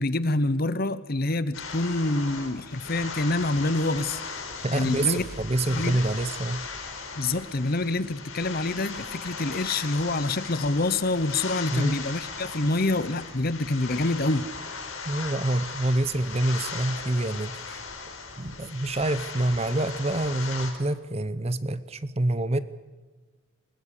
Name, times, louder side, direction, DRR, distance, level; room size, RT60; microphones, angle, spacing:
voice 1, 0.0-4.2 4.7-5.2 5.7-6.0 7.2-14.5, left 2 dB, 45° left, 14 dB, 1.0 m, -26 dB
sound 1, 1.5-20.7, left 4 dB, 80° left, 4.5 m, -38 dB
voice 2, 4.6-6.7 11.7-11.9 15.0-17.8 18.4-22.6, right 1 dB, 30° right, 14 dB, 0.8 m, -27 dB
sound 2, 5.1-7.4, right 2 dB, 80° right, 1.2 m, -48 dB
21.5 x 19.5 x 8.4 m, 1.3 s
head